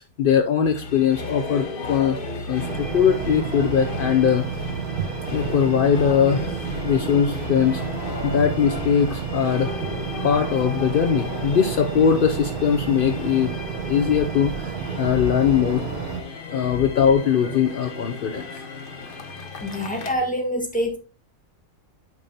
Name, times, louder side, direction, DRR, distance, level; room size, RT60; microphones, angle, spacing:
voice 1, 0.0-2.2 2.5-4.4 5.3-6.6 6.8-7.8 8.2-9.8 10.2-13.5 13.9-15.8 16.5-18.5, left 7 dB, 70° left, 0.5 m, -21 dB
sound 1, 0.6-20.1, left 3 dB, 40° left, 1.2 m, -34 dB
sound 2, 2.6-16.2, right 7 dB, 80° right, 1.4 m, -31 dB
voice 2, 19.6-21.0, equal, 5° left, 1.5 m, -26 dB
9.4 x 5.2 x 2.8 m
omnidirectional pair, 1.6 m